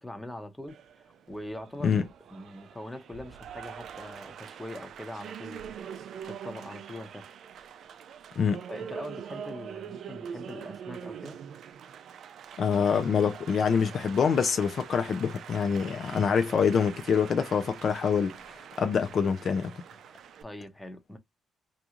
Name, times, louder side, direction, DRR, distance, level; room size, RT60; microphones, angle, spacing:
voice 1, 0.0-5.8 6.3-7.3 8.7-11.4 16.1-16.3 20.4-21.2, left 1 dB, 5° left, 0.8 m, -42 dB
Applause, 0.7-20.4, right 8 dB, 65° right, 0.3 m, -44 dB
voice 2, 12.6-18.3 18.8-19.7, left 6 dB, 55° left, 0.4 m, -25 dB
2.5 x 2.3 x 2.8 m
cardioid pair, 90°, 0 cm